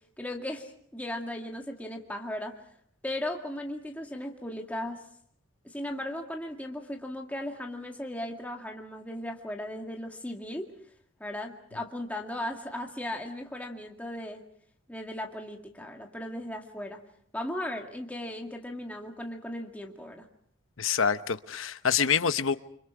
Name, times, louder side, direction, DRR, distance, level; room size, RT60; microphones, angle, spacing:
voice 1, 0.2-2.6 3.0-5.0 5.6-10.7 11.2-14.4 14.9-17.0 17.3-20.3, left 1 dB, 5° left, 2.1 m, -37 dB
voice 2, 20.8-22.6, left 6 dB, 75° left, 1.0 m, -26 dB
29.5 x 26.0 x 4.8 m
head